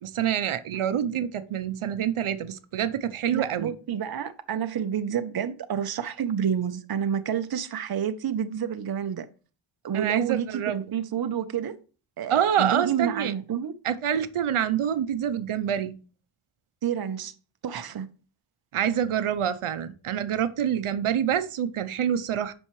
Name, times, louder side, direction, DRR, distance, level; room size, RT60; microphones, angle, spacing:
voice 1, 0.0-3.7 9.9-10.8 12.3-13.3 13.8-15.9 18.7-22.5, right 9 dB, 85° right, 0.8 m, -26 dB
voice 2, 3.3-9.3 9.8-11.8 12.2-13.7 16.8-17.3 17.6-18.1, right 8 dB, 50° right, 0.7 m, -29 dB
9.9 x 6.3 x 3.1 m
wide cardioid pair, 155°, 49 cm